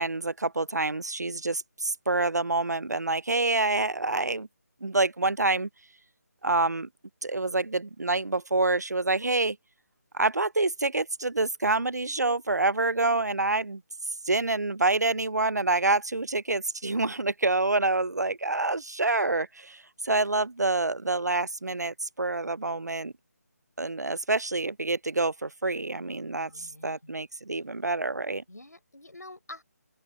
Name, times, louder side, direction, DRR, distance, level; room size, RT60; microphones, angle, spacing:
voice 1, 0.0-4.5 4.8-5.7 6.4-6.9 7.2-9.6 10.1-13.8 14.3-23.1 23.8-28.4, right 2 dB, 80° right, 0.5 m, -27 dB
voice 2, 26.4-27.2 28.5-29.6, left 2 dB, 75° left, 4.8 m, -47 dB
open air
figure-of-eight pair, 150°, 9 cm